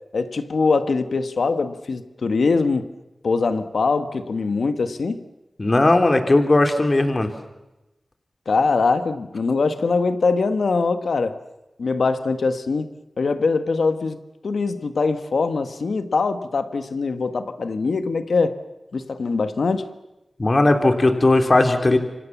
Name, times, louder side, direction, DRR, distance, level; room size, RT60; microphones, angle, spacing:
voice 1, 0.1-2.9 3.2-5.2 8.4-11.4 11.8-12.9 13.2-14.2 14.4-18.5 18.9-19.9, left 4 dB, 85° left, 10 dB, 1.5 m, -22 dB
voice 2, 5.6-7.3 20.4-22.0, left 2 dB, 45° left, 5 dB, 3.2 m, -17 dB
28.5 x 25.5 x 7.3 m, 1.0 s
cardioid pair, 40°, 0 cm